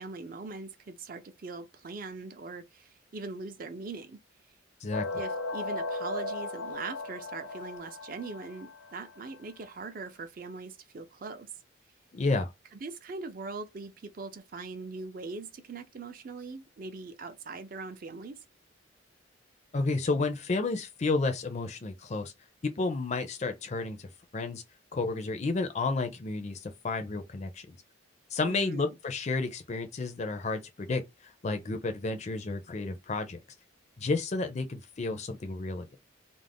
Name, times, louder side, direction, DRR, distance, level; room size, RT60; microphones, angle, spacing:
voice 1, 0.0-4.2 5.1-11.5 12.7-18.4 28.4-29.0, right 3 dB, 45° right, 0.5 m, -41 dB
sound 1, 4.9-9.4, left 2 dB, 80° left, 0.6 m, -37 dB
voice 2, 12.1-12.5 19.7-22.3 22.8-24.6 24.9-27.8 28.3-31.0 31.4-33.4 34.0-35.9, left 3 dB, 35° left, 0.4 m, -31 dB
2.4 x 2.0 x 3.4 m
head